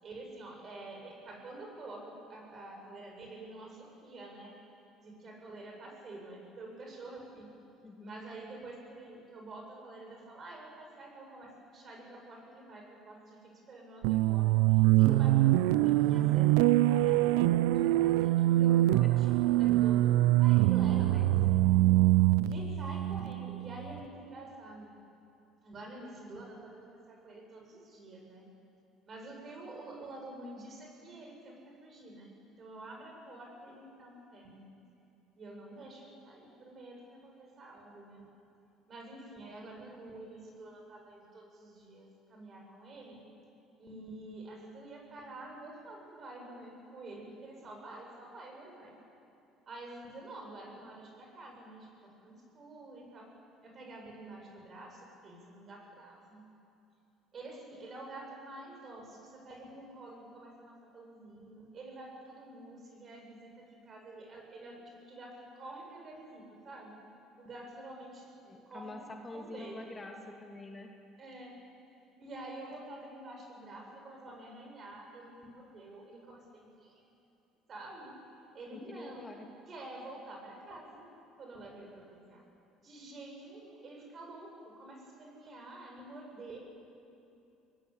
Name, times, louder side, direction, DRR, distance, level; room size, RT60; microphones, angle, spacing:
voice 1, 0.0-4.6 5.0-7.6 8.0-21.6 22.4-24.9 25.6-28.5 29.1-34.6 35.3-38.2 38.9-43.2 43.8-49.0 49.7-53.3 53.6-56.5 57.3-67.0 67.4-68.3 68.7-68.9 69.3-69.8 71.2-71.5 72.2-77.1 77.7-78.2 78.5-79.2 79.7-81.1 81.4-82.4 82.8-86.6, right 2 dB, 45° right, 1 dB, 7.7 m, -48 dB
voice 2, 7.8-8.1 19.0-19.1 21.1-21.3 68.5-70.9 78.7-79.5, left 2 dB, 20° left, 2 dB, 2.6 m, -46 dB
sound 1, 14.0-23.9, right 16 dB, 80° right, 0.5 m, -24 dB
24.5 x 19.0 x 8.8 m, 2.6 s
supercardioid pair, 80°, 0 cm